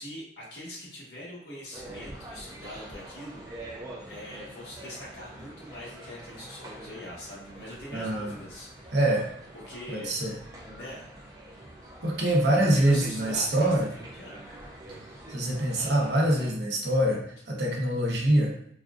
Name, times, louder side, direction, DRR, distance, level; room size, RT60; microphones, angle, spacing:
voice 1, 0.0-3.4 4.0-9.0 9.5-10.2 10.6-11.1 12.7-14.5 15.7-16.0, left 1 dB, 75° left, -6 dB, 1.4 m, -42 dB
sound 1, 1.7-16.5, right 1 dB, 20° right, 0.5 m, -46 dB
voice 2, 7.9-8.3 8.9-9.3 9.9-10.3 12.0-13.9 15.3-18.5, right 1 dB, 80° right, -2 dB, 0.8 m, -24 dB
4.2 x 2.3 x 2.4 m, 0.68 s
head